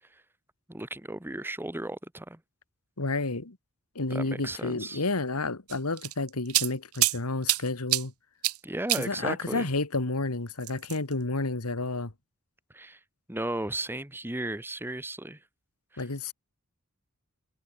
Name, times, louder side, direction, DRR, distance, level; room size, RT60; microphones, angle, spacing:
voice 1, 0.7-2.4 4.1-5.0 8.6-9.7 12.7-13.0 13.3-15.4 15.9-16.1, right 1 dB, 10° right, 1.3 m, -35 dB
voice 2, 3.0-3.6 4.0-8.1 9.0-12.1 16.0-16.3, left 2 dB, 85° left, 2.0 m, -30 dB
sound 1, 5.7-7.2 7.5-8.0 8.4-8.6 8.9-9.0 10.6-11.1, right 16 dB, 80° right, 1.0 m, -26 dB
head